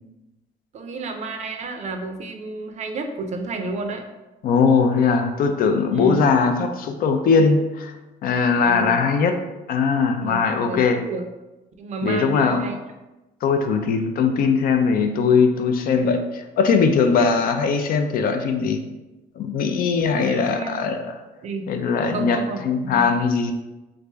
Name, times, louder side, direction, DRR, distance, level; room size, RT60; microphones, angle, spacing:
voice 1, 0.7-4.0 5.9-6.3 8.5-9.1 10.2-11.3 11.8-12.8 17.1-17.5 20.1-21.0 21.4-21.7 22.1-23.0, right 3 dB, 45° right, 5 dB, 0.5 m, -31 dB
voice 2, 4.4-7.9 8.2-9.4 9.7-11.0 12.0-12.6 13.4-18.8 19.4-21.1 21.7-23.5, left 5 dB, 60° left, 6 dB, 0.4 m, -20 dB
3.1 x 2.5 x 3.3 m, 1.1 s
cardioid pair, 110°, 17 cm